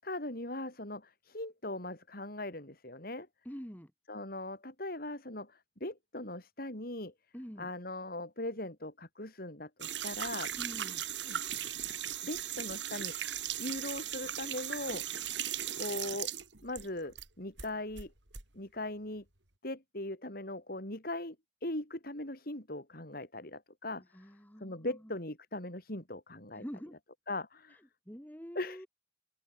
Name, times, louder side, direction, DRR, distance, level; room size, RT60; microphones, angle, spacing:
voice 1, 0.0-3.3 4.1-7.1 7.6-10.5 11.2-11.4 12.2-15.2 15.8-16.3 16.6-18.1 18.5-19.2 19.6-21.4 21.6-24.3 24.6-26.6 27.3-27.8 28.5-28.9, left 1 dB, 55° left, 6.4 m, -40 dB
voice 2, 3.4-3.9 7.3-7.7 10.6-11.0 24.1-25.0 26.5-27.0 27.7-27.8 28.1-28.9, equal, 10° left, 7.6 m, -46 dB
sound 1, 9.8-17.3 17.6-18.4, right 10 dB, 90° right, 4.8 m, -38 dB
open air
head